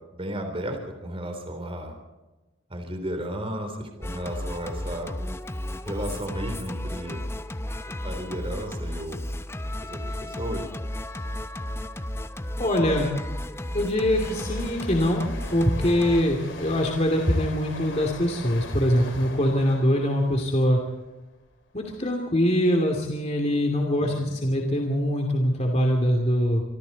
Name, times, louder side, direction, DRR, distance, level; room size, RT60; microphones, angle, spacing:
voice 1, 0.1-2.0 2.7-5.2 5.8-7.2 7.9-9.3 9.8-10.7 24.0-24.4, right 1 dB, 30° right, 5 dB, 3.5 m, -34 dB
Singing, 4.0-16.2, left 1 dB, 15° left, 0.7 m, -33 dB
voice 2, 12.6-13.1 13.7-20.8 21.7-26.6, equal, 35° left, 2 dB, 2.7 m, -23 dB
sound 1, 14.1-21.6 21.9-22.2, left 2 dB, 65° left, 3.5 m, -41 dB
26.0 x 25.5 x 4.2 m, 1.1 s
head